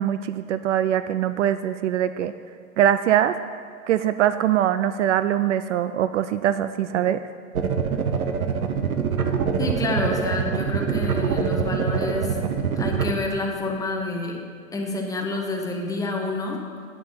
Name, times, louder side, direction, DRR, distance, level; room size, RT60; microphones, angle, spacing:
voice 1, 0.0-2.3 2.8-3.3 3.9-7.2, right 11 dB, 60° right, 12 dB, 0.5 m, -22 dB
sound 1, 7.6-13.1, right 6 dB, 85° right, 1.1 m, -24 dB
voice 2, 9.6-12.4 12.7-14.4 14.7-16.6, left 2 dB, 10° left, 0 dB, 1.3 m, -28 dB
11.0 x 9.2 x 5.7 m, 2.1 s
hypercardioid pair, 130°, 42 cm